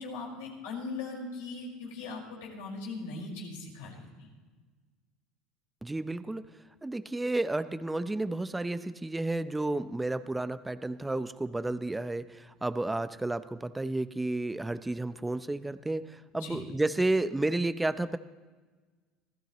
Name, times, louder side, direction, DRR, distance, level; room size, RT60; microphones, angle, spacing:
voice 1, 0.0-4.3 16.3-16.7, left 3 dB, 80° left, -1 dB, 5.3 m, -40 dB
voice 2, 5.8-6.5 6.8-18.2, right 2 dB, 10° right, 13 dB, 0.7 m, -31 dB
25.5 x 15.5 x 3.1 m, 1.4 s
supercardioid pair, 90°, 0 cm